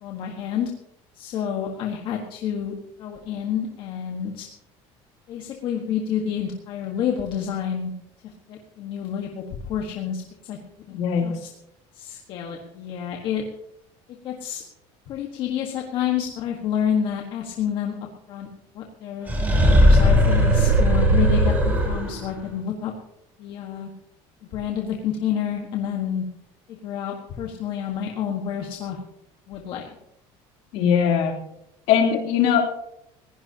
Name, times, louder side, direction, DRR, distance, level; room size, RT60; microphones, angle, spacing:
voice 1, 0.0-0.7 1.1-2.7 3.0-4.5 5.3-7.9 8.5-10.6 10.9-11.5 11.9-13.4 14.2-14.6 15.1-17.9 18.3-18.5 18.7-19.3 19.7-22.9 23.4-23.9 24.5-26.2 26.7-29.0 29.5-29.9, left 8 dB, 45° left, 1 dB, 1.5 m, -29 dB
voice 2, 10.9-11.3 30.7-31.3 31.9-32.6, left 8 dB, 65° left, 2 dB, 3.2 m, -20 dB
sound 1, 19.3-22.3, equal, 15° right, 2.6 m, -17 dB
20.5 x 16.5 x 2.9 m, 0.79 s
cardioid pair, 175°, 12 cm